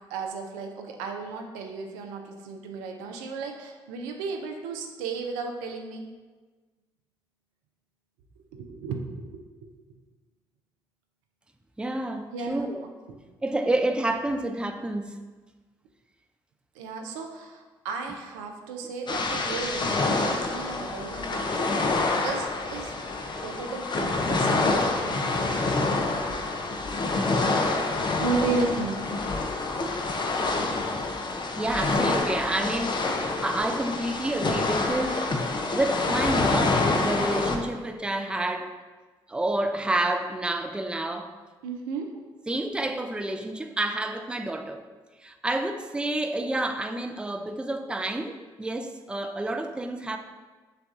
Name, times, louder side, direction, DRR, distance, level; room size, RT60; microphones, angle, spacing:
voice 1, 0.1-6.1 8.5-9.7 12.3-12.6 13.1-13.2 16.7-22.9 23.4-25.5 28.1-29.1 41.6-42.1, right 4 dB, 85° right, 3 dB, 0.4 m, -34 dB
voice 2, 11.8-12.8 13.4-15.2 31.5-35.3 35.7-38.7 39.3-41.3 42.5-44.8 45.2-50.2, right 1 dB, 10° right, 6 dB, 0.4 m, -29 dB
sound 1, 19.1-37.6, left 3 dB, 40° left, 0.6 m, -27 dB
6.4 x 2.3 x 2.6 m, 1.3 s
hypercardioid pair, 45°, 12 cm